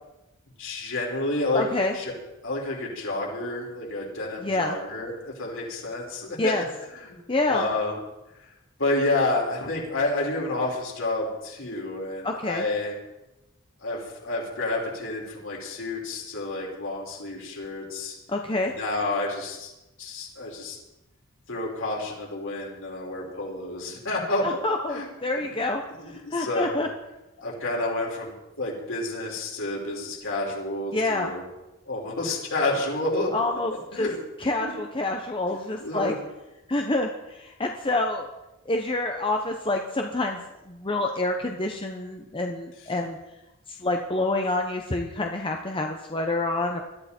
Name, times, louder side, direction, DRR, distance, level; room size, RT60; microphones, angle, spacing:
voice 1, 0.6-1.6 1.9-2.1 2.4-6.5 7.0-7.2 7.5-8.0 8.8-12.9 13.8-18.2 18.7-19.7 20.0-20.8 21.5-24.4 24.9-25.1 26.3-26.8 27.4-31.4 31.9-33.3 33.9-34.2 34.6-34.7 35.8-36.2, left 2 dB, 65° left, -2 dB, 5.6 m, -29 dB
voice 2, 1.5-1.9 4.4-4.8 6.4-6.6 7.3-7.7 12.2-12.6 18.3-18.7 24.4-26.9 30.9-31.3 33.3-34.1 34.4-36.1 36.7-38.3 38.7-43.2 43.7-46.8, left 2 dB, 25° left, 2 dB, 1.1 m, -27 dB
21.5 x 13.5 x 4.5 m, 0.97 s
head